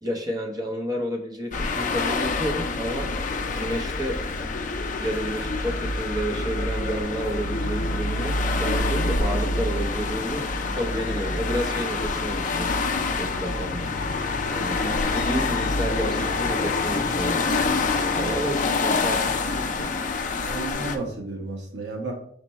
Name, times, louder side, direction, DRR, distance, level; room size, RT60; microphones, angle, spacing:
voice 1, 0.0-3.1 3.5-4.2 5.0-10.4 10.7-12.7 13.2-13.9 14.5-17.5 18.1-20.0, equal, 20° right, 2 dB, 0.7 m, -30 dB
sound 1, 1.5-21.0, left 3 dB, 45° left, 0.4 m, -26 dB
voice 2, 20.4-22.1, right 3 dB, 60° right, -2 dB, 1.2 m, -33 dB
5.2 x 2.2 x 4.2 m, 0.64 s
head